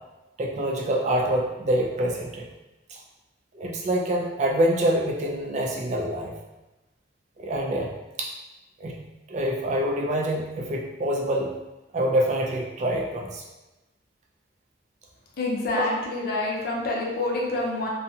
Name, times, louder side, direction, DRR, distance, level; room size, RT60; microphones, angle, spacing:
voice 1, 0.4-2.5 3.5-6.3 7.4-7.9 8.2-8.3 8.8-9.0 9.3-11.5 11.9-13.4 15.8-15.9, right 1 dB, 40° right, -1 dB, 0.3 m, -26 dB
voice 2, 15.4-17.9, left 2 dB, 50° left, -3 dB, 0.6 m, -27 dB
2.6 x 2.3 x 2.7 m, 1.0 s
head